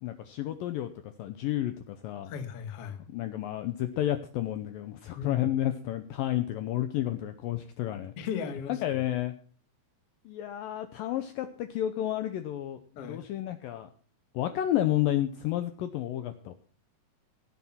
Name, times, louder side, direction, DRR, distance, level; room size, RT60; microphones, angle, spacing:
voice 1, 0.0-2.3 3.1-8.1 8.7-9.3 10.3-13.9 14.3-16.5, left 12 dB, 75° left, 9 dB, 2.2 m, -31 dB
voice 2, 2.3-3.0 5.1-5.5 8.2-8.8 12.9-13.2, left 7 dB, 55° left, 9 dB, 1.7 m, -36 dB
17.0 x 8.3 x 5.9 m, 0.42 s
omnidirectional pair, 4.7 m